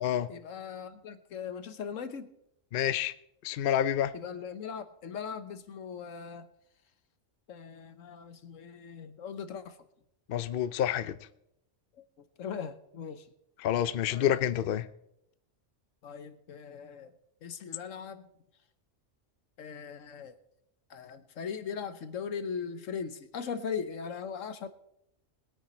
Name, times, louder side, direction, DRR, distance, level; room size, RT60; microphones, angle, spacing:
voice 1, 0.3-2.3 4.1-6.5 7.5-9.8 12.0-13.3 14.1-14.5 16.0-17.1 17.4-18.3 19.6-20.3 20.9-24.7, left 6 dB, 80° left, 1.3 m, -39 dB
voice 2, 2.7-3.1 3.4-4.1 10.3-11.1 13.6-14.9, left 10 dB, 55° left, 0.7 m, -28 dB
20.5 x 9.2 x 4.3 m
omnidirectional pair, 1.3 m